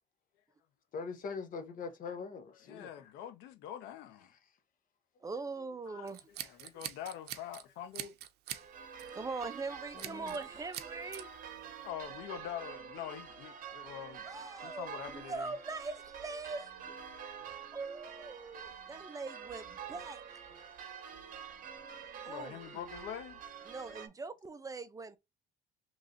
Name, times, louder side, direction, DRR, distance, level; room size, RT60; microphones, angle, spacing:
voice 1, 0.9-2.9 10.0-10.4, left 5 dB, 55° left, 0.9 m, -42 dB
voice 2, 2.5-4.4 5.9-6.1 6.4-8.2 11.8-14.3 14.6-15.4 17.4-17.5 22.3-23.4, left 10 dB, 90° left, 0.7 m, -45 dB
voice 3, 5.2-6.2 9.1-11.3 14.3-16.9 17.7-20.2 22.2-22.6 23.6-25.2, right 3 dB, 20° right, 0.4 m, -42 dB
Scissors, 6.1-7.6 7.9-8.7 9.0-9.2 10.0-10.4 10.7-11.2, right 13 dB, 75° right, 0.5 m, -43 dB
sound 1, 8.5-24.1, right 7 dB, 55° right, 1.0 m, -47 dB
3.1 x 2.6 x 3.7 m
cardioid pair, 110°, 17 cm